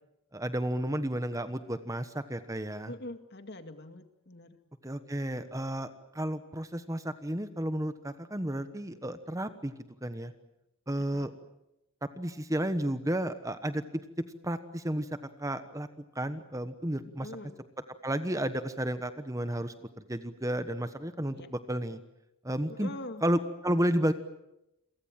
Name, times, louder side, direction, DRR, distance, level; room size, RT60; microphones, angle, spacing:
voice 1, 0.3-2.9 4.8-9.7 10.0-10.3 10.9-11.3 12.2-13.8 14.4-15.1 15.4-15.9 16.1-17.3 18.0-22.0 22.4-22.9 23.2-24.1, right 1 dB, 15° right, 10 dB, 1.2 m, -32 dB
voice 2, 2.9-4.6 11.0-11.3 17.0-17.6 21.3-21.5 22.7-23.2, left 1 dB, 50° left, 8 dB, 2.2 m, -44 dB
29.5 x 23.5 x 7.6 m, 0.88 s
head